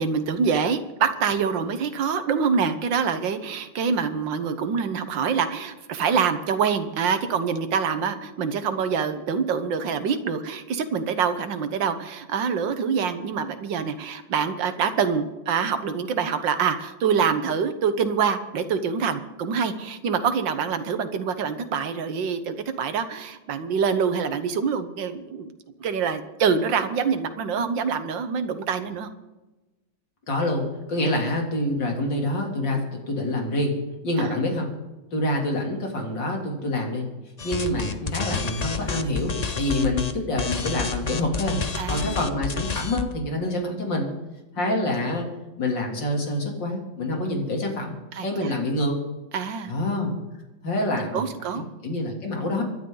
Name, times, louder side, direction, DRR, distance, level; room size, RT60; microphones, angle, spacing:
voice 1, 0.0-25.5 25.8-29.1 31.0-31.2 41.8-42.2 44.6-44.7 48.1-48.5 49.3-49.7 51.1-51.7, right 6 dB, 80° right, 10 dB, 1.9 m, -25 dB
voice 2, 30.3-33.7 34.0-34.7 35.1-37.1 37.4-41.6 41.9-44.1 44.6-45.3 45.6-47.9 48.2-49.0 49.7-50.1 50.6-52.6, left 1 dB, 80° left, 1 dB, 3.7 m, -26 dB
sound 1, 37.4-40.1 40.4-43.1, left 5 dB, 35° left, 0.7 m, -29 dB
25.5 x 11.5 x 3.9 m, 1.1 s
omnidirectional pair, 2.0 m